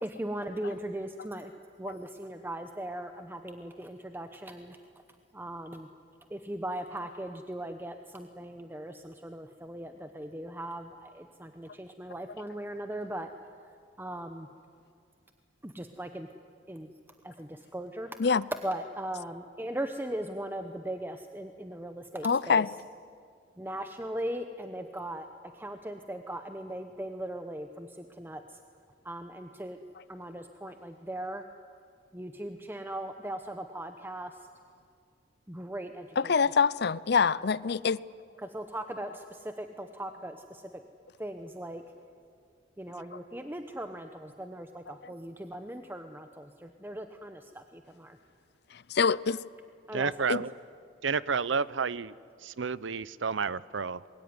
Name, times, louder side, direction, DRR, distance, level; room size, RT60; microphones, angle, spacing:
voice 1, 0.0-1.5 1.8-4.8 5.3-5.9 6.3-13.3 14.0-14.5 15.6-16.3 16.7-16.9 17.2-18.2 18.6-22.6 23.6-25.3 25.5-28.6 29.0-29.8 30.1-31.4 32.1-34.4 35.5-36.3 38.4-40.6 41.2-41.8 42.8-48.2 49.9-50.1, right 1 dB, 10° right, 7 dB, 0.9 m, -39 dB
voice 2, 22.2-22.7 36.2-38.0 44.9-45.0 48.7-49.4 50.3-50.4, left 5 dB, 60° left, 20 dB, 0.6 m, -25 dB
voice 3, 49.9-50.5 51.0-52.1 52.4-54.0, right 5 dB, 90° right, 19 dB, 0.7 m, -30 dB
26.5 x 22.0 x 9.7 m, 2.3 s
head